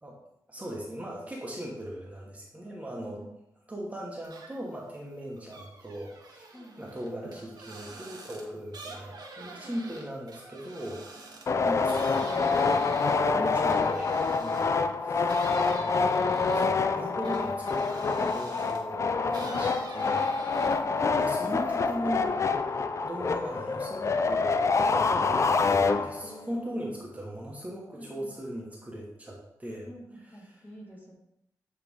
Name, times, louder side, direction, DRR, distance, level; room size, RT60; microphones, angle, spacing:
voice 1, 0.5-3.2 3.7-6.5 6.8-12.8 13.3-15.4 15.8-20.2 21.1-22.5 23.0-24.6 24.9-29.9 30.5-30.6, equal, 20° right, -3 dB, 1.3 m, -39 dB
voice 2, 2.9-3.3 6.5-6.9 18.8-20.3 20.5-21.0 26.2-27.0 28.0-28.3 29.9-31.1, right 1 dB, 25° left, -2 dB, 1.8 m, -49 dB
sound 1, 4.2-4.8 5.1-14.8 15.3-18.9 19.3-21.0 21.3-21.9, right 3 dB, 70° right, 1.2 m, -46 dB
sound 2, 11.5-26.4, left 4 dB, 45° left, 0.4 m, -26 dB
8.4 x 3.4 x 3.6 m, 0.81 s
cardioid pair, 85°, 7 cm